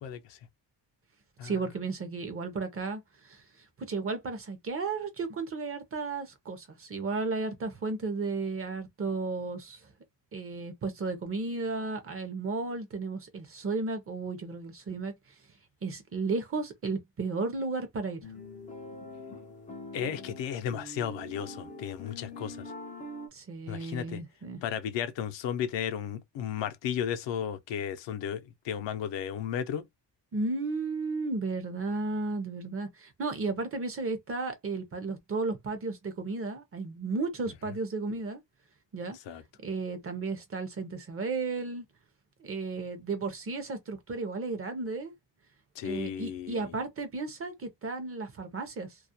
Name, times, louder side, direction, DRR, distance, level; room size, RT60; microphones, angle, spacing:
voice 1, 0.0-0.4 1.4-1.6 19.9-22.7 23.7-24.2 24.6-29.9 39.3-39.4 45.8-46.6, left 8 dB, 80° left, 0.6 m, -34 dB
voice 2, 1.4-3.4 3.8-9.8 10.3-15.1 15.8-18.2 23.3-24.6 30.3-38.4 38.9-39.2 39.6-41.9 42.4-45.1 45.8-49.0, right 3 dB, 30° right, 0.5 m, -34 dB
sound 1, 18.2-23.3, left 2 dB, 20° left, 0.3 m, -44 dB
2.4 x 2.0 x 2.7 m
cardioid pair, 155°, 43 cm